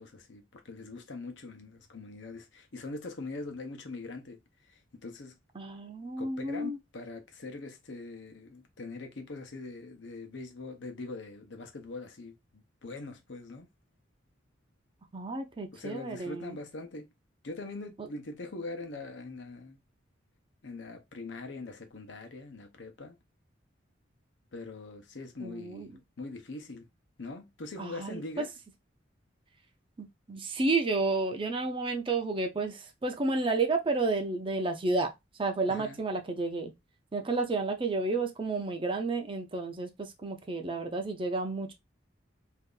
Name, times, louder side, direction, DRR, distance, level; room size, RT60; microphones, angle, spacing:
voice 1, 0.0-5.4 6.2-13.7 15.7-17.1 17.4-19.8 20.6-23.2 24.5-26.9 27.2-28.5 35.7-36.0, left 3 dB, 75° left, 0.8 m, -42 dB
voice 2, 5.6-6.8 15.1-16.6 25.4-25.9 27.8-28.4 30.0-35.1 35.4-36.7 37.1-41.7, right 3 dB, 25° right, 0.5 m, -31 dB
2.7 x 2.4 x 3.7 m
head